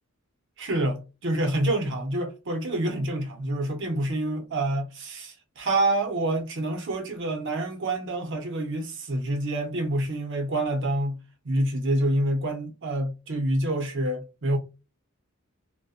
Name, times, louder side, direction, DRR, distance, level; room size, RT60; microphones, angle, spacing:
voice 1, 0.6-11.2 11.4-14.6, right 1 dB, 55° right, 0.7 m, -27 dB
2.6 x 2.1 x 2.4 m
head